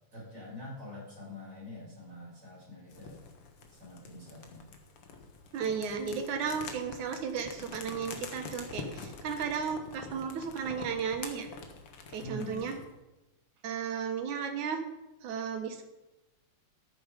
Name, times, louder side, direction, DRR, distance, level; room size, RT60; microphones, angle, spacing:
voice 1, 0.1-3.2 3.7-4.7 12.2-12.7, left 2 dB, 35° right, -6 dB, 6.8 m, -45 dB
sound 1, 2.9-12.9, left 4 dB, 55° left, 2.2 m, -46 dB
voice 2, 5.5-11.5 12.1-12.8 13.6-14.8 15.2-15.8, right 6 dB, 85° right, 5 dB, 2.9 m, -34 dB
13.5 x 11.0 x 5.2 m, 1.0 s
omnidirectional pair, 3.3 m